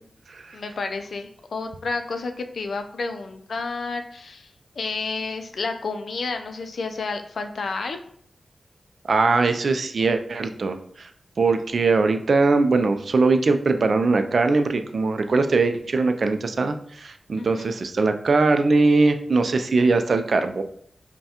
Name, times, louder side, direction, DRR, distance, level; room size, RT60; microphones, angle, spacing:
voice 1, 0.5-4.5 4.8-8.0 17.4-17.7, left 4 dB, 80° left, 7 dB, 0.4 m, -30 dB
voice 2, 9.1-10.8 11.4-20.6, right 3 dB, 65° right, 8 dB, 0.4 m, -21 dB
5.4 x 2.2 x 2.9 m, 0.63 s
wide cardioid pair, 75°, 0 cm